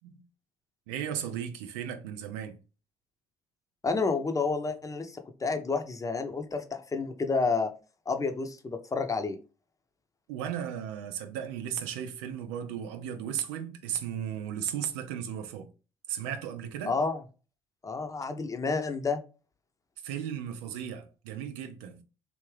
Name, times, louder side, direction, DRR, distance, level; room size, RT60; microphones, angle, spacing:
voice 1, 0.9-2.6 10.3-15.7 16.1-17.0 20.0-22.0, right 9 dB, 80° right, 0.6 m, -35 dB
voice 2, 3.8-5.1 5.4-7.7 8.1-9.4 16.9-17.2 17.8-19.2, left 4 dB, 25° left, 0.7 m, -29 dB
3.5 x 2.5 x 3.2 m
hypercardioid pair, 60°, 14 cm